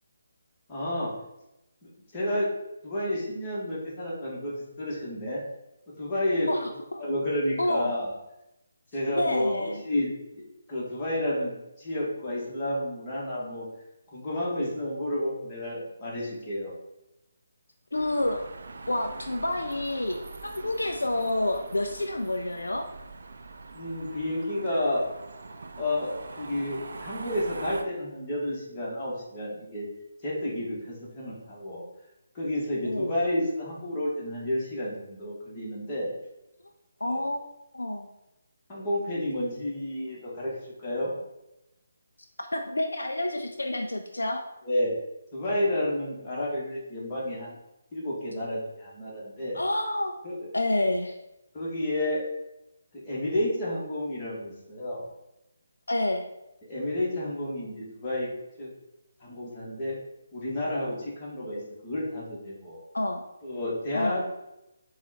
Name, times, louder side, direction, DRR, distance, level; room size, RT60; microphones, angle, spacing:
voice 1, 0.7-1.1 1.8-2.5 2.8-5.4 6.0-6.7 7.0-8.1 8.9-10.4 10.7-11.5 11.8-13.7 14.1-16.7 23.7-25.0 25.8-26.1 26.4-29.9 30.2-31.8 32.3-36.1 37.0-37.2 38.7-41.1 44.6-44.9 45.3-47.6 47.9-49.6 50.2-50.5 51.5-52.2 52.9-55.0 56.7-58.3 58.6-58.7 59.2-60.0 60.3-62.8 63.4-64.2, left 1 dB, 25° left, -7 dB, 1.4 m, -30 dB
voice 2, 6.5-7.0 7.6-7.9 9.1-9.8 17.9-18.5 18.9-22.9 32.9-33.1 37.0-38.1 42.4-44.5 49.5-50.1 50.5-51.2 55.9-56.2 62.9-63.3 63.9-64.2, left 1 dB, 75° left, 4 dB, 0.3 m, -29 dB
sound 1, 17.9-27.8, right 3 dB, 55° right, 0.3 m, -43 dB
4.1 x 2.3 x 4.0 m, 0.91 s
figure-of-eight pair, 145°, 0 cm